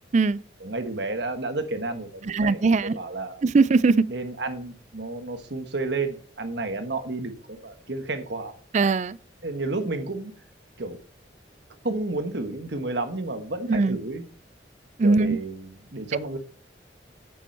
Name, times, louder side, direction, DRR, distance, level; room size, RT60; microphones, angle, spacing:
voice 1, 0.6-3.4 4.1-8.5 9.4-10.3 10.8-11.0 11.8-14.2 15.0-16.4, right 2 dB, 65° right, 1.3 m, -31 dB
voice 2, 2.3-2.9 3.4-4.0 8.7-9.2 13.7-14.0 15.0-15.4, right 3 dB, 40° right, 0.4 m, -20 dB
8.6 x 8.5 x 4.3 m
head